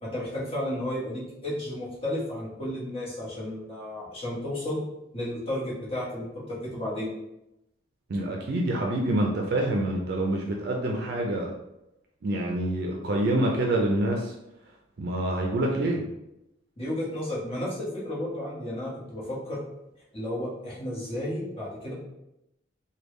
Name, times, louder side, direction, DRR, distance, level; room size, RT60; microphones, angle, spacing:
voice 1, 0.0-4.8 5.1-7.1 16.8-19.6 20.1-21.9, left 1 dB, 30° left, -7 dB, 1.1 m, -33 dB
voice 2, 8.1-11.5 12.2-14.3 15.0-16.0, right 1 dB, 55° right, 0 dB, 0.4 m, -26 dB
3.4 x 2.2 x 3.1 m, 0.87 s
head